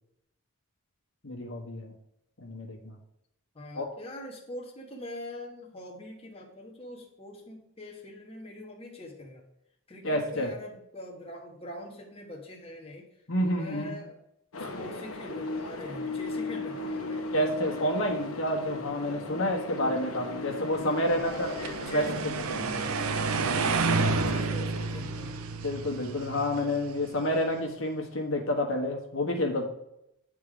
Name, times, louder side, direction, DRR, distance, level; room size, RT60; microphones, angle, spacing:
voice 1, 1.2-1.9 2.4-2.9 3.7-3.9 10.0-10.5 13.3-14.0 17.3-21.5 21.9-22.8 25.6-29.6, left 1 dB, 65° left, 1 dB, 1.4 m, -29 dB
voice 2, 3.5-9.4 9.9-13.1 13.4-14.2 14.6-17.3 21.1-25.4, left 1 dB, 25° left, -2 dB, 1.2 m, -43 dB
sound 1, 14.5-21.9, left 2 dB, 80° left, 1.1 m, -36 dB
sound 2, 21.1-27.2, right 3 dB, 75° right, 0.6 m, -30 dB
9.4 x 3.7 x 4.9 m, 0.81 s
head